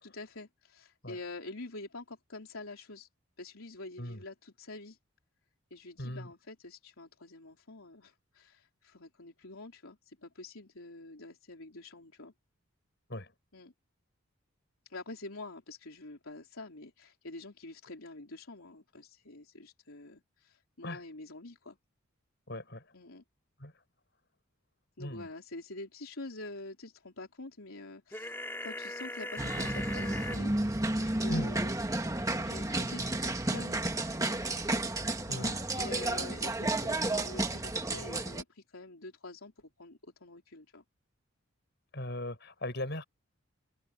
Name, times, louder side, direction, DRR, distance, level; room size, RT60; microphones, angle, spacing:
voice 1, 0.0-3.1 3.4-5.0 5.7-12.3 13.5-13.7 14.9-21.8 22.9-23.2 25.0-30.5 31.0-32.1 32.4-34.4 35.7-40.8, left 2 dB, 80° left, 3.6 m, -47 dB
voice 2, 6.0-6.3 13.1-13.3 20.8-21.0 22.5-22.8 23.6-23.7 25.0-25.3 31.3-31.5 35.3-35.6 41.9-43.0, left 1 dB, 50° left, 7.2 m, -38 dB
sound 1, 28.1-30.4, left 2 dB, 10° left, 2.7 m, -39 dB
sound 2, 29.4-38.4, right 2 dB, 15° right, 1.2 m, -32 dB
head